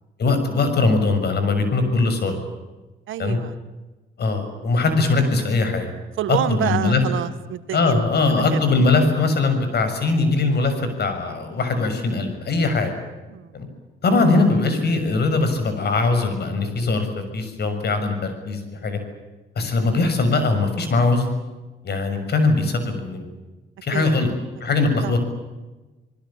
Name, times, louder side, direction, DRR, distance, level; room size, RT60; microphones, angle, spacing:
voice 1, 0.2-2.4 3.2-3.4 4.2-5.9 6.3-7.0 7.7-10.7 11.0-12.9 13.5-13.7 14.0-17.1 17.3-19.0 19.5-21.3 21.8-23.3 23.8-24.3 24.6-25.2, left 3 dB, 55° left, 8 dB, 6.7 m, -21 dB
voice 2, 3.1-3.5 6.2-8.7 13.3-13.7 23.9-24.2 25.0-25.1, right 12 dB, 80° right, 13 dB, 1.4 m, -28 dB
28.0 x 20.0 x 8.9 m, 1.2 s
cardioid pair, 90°, 20 cm